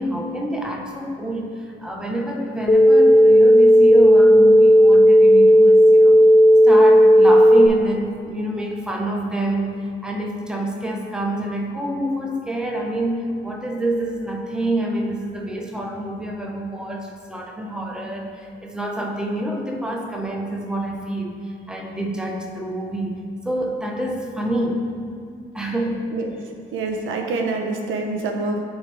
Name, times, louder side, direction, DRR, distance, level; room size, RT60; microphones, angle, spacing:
voice 1, 0.0-6.2 6.6-24.9 25.5-26.1, right 1 dB, 5° right, 0 dB, 0.8 m, -27 dB
sound 1, 2.7-7.7, equal, 25° left, 0.5 m, -11 dB
voice 2, 26.7-28.6, right 3 dB, 85° right, 2 dB, 0.8 m, -26 dB
9.7 x 3.6 x 3.3 m, 2.2 s
cardioid pair, 90°, 20 cm